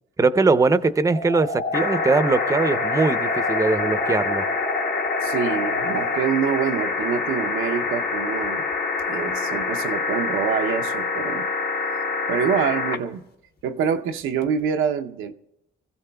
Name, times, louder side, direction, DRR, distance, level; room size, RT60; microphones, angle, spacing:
voice 1, 0.2-4.5, right 3 dB, 15° right, 0.6 m, -21 dB
sound 1, 1.1-6.2, left 2 dB, 75° left, 2.9 m, -29 dB
sound 2, 1.7-13.0 14.4-14.5, left 4 dB, 50° left, 1.2 m, -26 dB
voice 2, 5.2-8.7 9.1-11.5 11.9-12.0 12.3-13.2 13.6-15.3, right 7 dB, 85° right, 0.7 m, -26 dB
25.0 x 15.5 x 2.3 m
cardioid pair, 90°, 20 cm